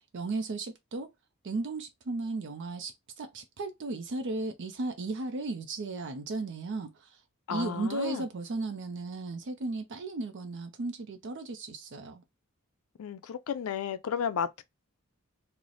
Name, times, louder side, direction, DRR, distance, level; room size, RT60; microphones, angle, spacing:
voice 1, 0.1-1.1 1.4-7.2 7.5-12.2, right 3 dB, 55° right, 0.5 m, -35 dB
voice 2, 7.5-8.2 13.0-14.6, left 7 dB, 70° left, 0.4 m, -33 dB
3.1 x 2.0 x 3.9 m
head